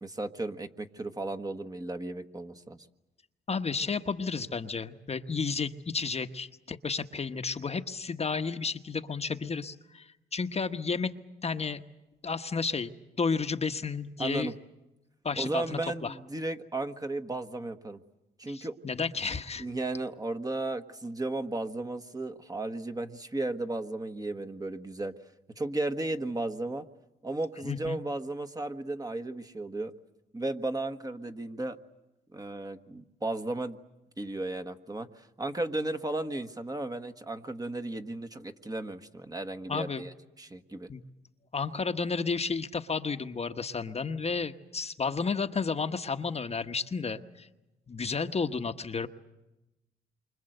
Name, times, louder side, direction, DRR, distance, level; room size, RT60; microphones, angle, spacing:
voice 1, 0.0-2.8 14.2-14.5 15.4-18.0 18.4-18.8 19.6-25.1 25.6-26.8 27.2-29.9 30.3-31.8 32.3-33.8 34.2-40.9, right 2 dB, 20° right, 8 dB, 1.5 m, -35 dB
voice 2, 3.5-11.1 11.4-11.8 12.2-12.9 13.2-14.5 15.2-16.1 18.5-19.6 27.6-28.0 39.7-40.0 40.9-41.0 41.5-47.5 47.9-49.1, left 5 dB, 30° left, 8 dB, 1.2 m, -32 dB
28.5 x 25.5 x 8.0 m, 0.98 s
cardioid pair, 90°, 20 cm